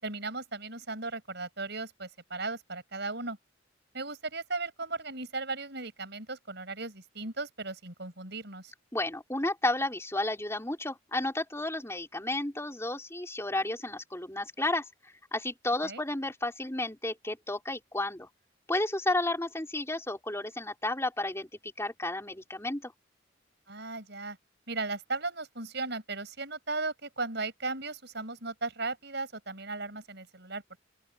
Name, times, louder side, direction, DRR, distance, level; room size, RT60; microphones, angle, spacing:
voice 1, 0.0-3.4 3.9-8.7 15.8-16.0 23.7-24.4 24.7-30.8, right 3 dB, 60° right, 7.6 m, -36 dB
voice 2, 8.9-18.3 18.7-22.9, left 2 dB, 15° left, 4.5 m, -32 dB
open air
head